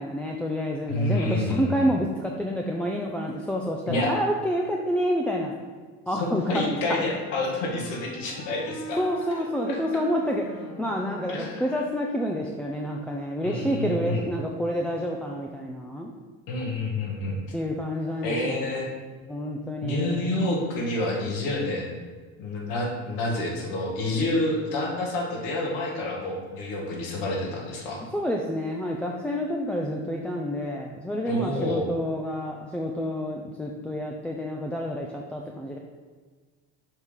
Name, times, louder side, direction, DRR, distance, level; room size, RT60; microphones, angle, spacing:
voice 1, 0.0-5.5 6.1-7.0 9.0-16.1 17.5-18.6 19.3-20.5 28.1-35.8, equal, 5° left, -1 dB, 0.4 m, -28 dB
voice 2, 0.9-1.9 3.9-4.1 6.2-9.0 9.6-10.0 11.3-11.8 13.4-14.2 16.5-17.4 18.2-18.9 19.8-22.0 22.4-28.0 31.3-31.8, left 2 dB, 75° left, -1 dB, 1.8 m, -28 dB
Wind instrument woodwind instrument, 6.5-11.9, equal, 30° left, 1.9 m, -43 dB
6.3 x 3.4 x 5.6 m, 1.5 s
supercardioid pair, 115°, 35 cm